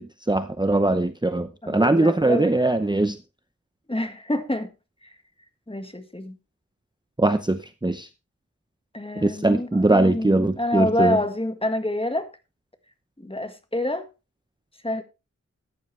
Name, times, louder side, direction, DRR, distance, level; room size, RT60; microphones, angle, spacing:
voice 1, 0.3-3.2 7.2-8.1 9.2-11.2, right 2 dB, 15° right, 0.7 m, -21 dB
voice 2, 1.6-2.5 3.9-4.7 5.0-5.1 5.7-6.4 8.9-12.3 13.2-14.1 14.8-15.0, left 1 dB, 20° left, 1.7 m, -27 dB
14.5 x 10.0 x 3.3 m
wide cardioid pair, 70°, 30 cm